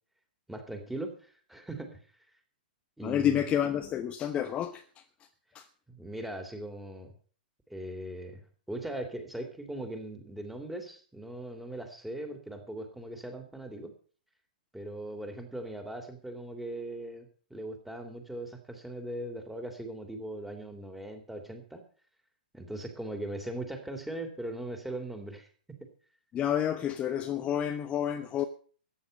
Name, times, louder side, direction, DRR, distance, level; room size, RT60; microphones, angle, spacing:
voice 1, 0.5-2.0 3.0-3.4 5.9-7.1 7.7-8.4 8.7-13.9 14.7-21.8 22.5-25.9, right 1 dB, 5° right, 3.1 m, -39 dB
voice 2, 3.0-5.3 5.5-5.7 26.3-28.4, left 10 dB, 25° left, 1.0 m, -30 dB
14.5 x 9.7 x 6.7 m
hypercardioid pair, 115°, 5 cm